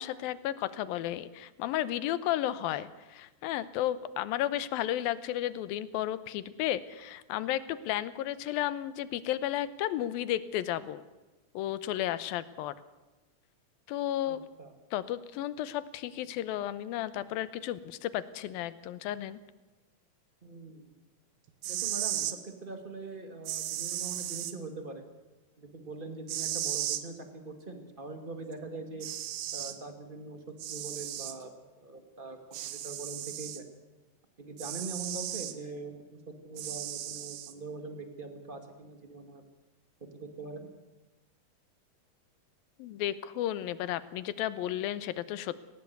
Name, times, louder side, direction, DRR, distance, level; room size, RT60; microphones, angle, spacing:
voice 1, 0.0-11.0 11.5-12.7 13.9-14.5 14.9-19.4 42.8-45.5, left 12 dB, 85° left, 16 dB, 2.7 m, -33 dB
voice 2, 14.3-14.7 20.4-20.9 21.6-25.0 25.6-29.1 29.5-31.5 31.8-33.6 34.4-39.4 40.1-40.7, right 3 dB, 20° right, 7 dB, 1.6 m, -43 dB
sound 1, 21.5-22.4 23.5-24.5 26.3-27.0 28.5-28.6 29.0-29.8 30.6-31.4 32.5-33.6 34.6-35.6 36.6-37.5, right 12 dB, 85° right, 3.0 m, -35 dB
19.0 x 18.0 x 8.0 m, 1.1 s
omnidirectional pair, 4.1 m